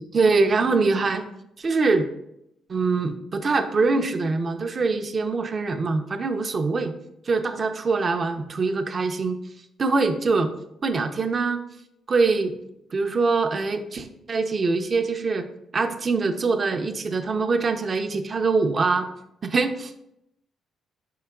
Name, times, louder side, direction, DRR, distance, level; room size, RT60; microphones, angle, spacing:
voice 1, 0.1-1.2 1.6-2.1 2.7-6.9 7.3-9.4 9.8-10.5 10.8-11.6 12.1-12.5 12.9-15.5 15.7-19.1 19.4-20.0, right 4 dB, 40° right, 8 dB, 0.5 m, -23 dB
5.1 x 4.6 x 2.2 m, 0.81 s
cardioid pair, 90°, 0 cm